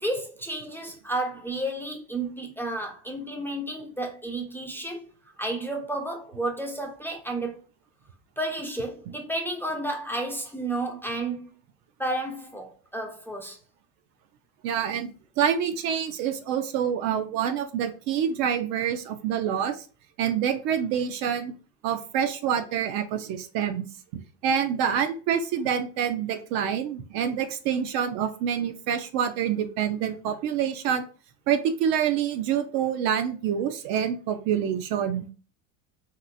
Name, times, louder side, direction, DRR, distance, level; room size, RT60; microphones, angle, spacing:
voice 1, 0.0-5.1 5.4-7.6 8.4-11.5 12.0-13.6, right 1 dB, 5° left, 0.5 m, -31 dB
voice 2, 14.6-15.1 15.4-19.8 20.2-21.5 21.8-23.8 24.1-31.0 31.5-35.3, right 8 dB, 55° right, 0.6 m, -27 dB
3.0 x 2.9 x 2.5 m
supercardioid pair, 105°, 41 cm